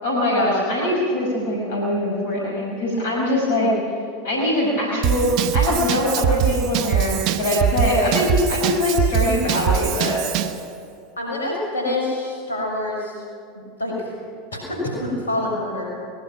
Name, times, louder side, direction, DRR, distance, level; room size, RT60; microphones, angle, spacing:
voice 1, 0.0-3.7 4.2-10.2, left 1 dB, 70° left, -2 dB, 5.6 m, -22 dB
Drum kit / Drum, 5.0-10.6, right 10 dB, 55° right, 1.1 m, -22 dB
voice 2, 11.2-13.1 13.5-14.1 14.7-15.9, left 1 dB, 85° left, -1 dB, 6.4 m, -26 dB
23.5 x 20.5 x 6.1 m, 2.3 s
hypercardioid pair, 80°, 0 cm